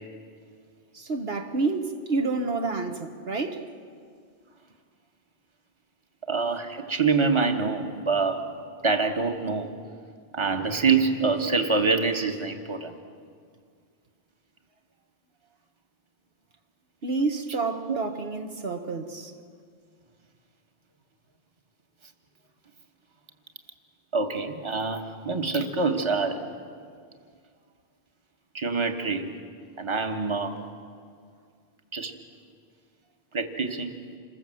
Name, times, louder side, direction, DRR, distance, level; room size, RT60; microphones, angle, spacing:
voice 1, 0.9-3.7 17.0-19.3, right 3 dB, 70° right, 1.4 m, -29 dB
voice 2, 6.3-8.4 8.8-9.8 10.3-12.9 17.9-18.0 24.1-26.4 28.5-29.3 29.8-30.6 31.9-32.1 33.3-33.9, right 4 dB, 30° right, 1.4 m, -25 dB
27.5 x 20.5 x 7.7 m
omnidirectional pair, 1.1 m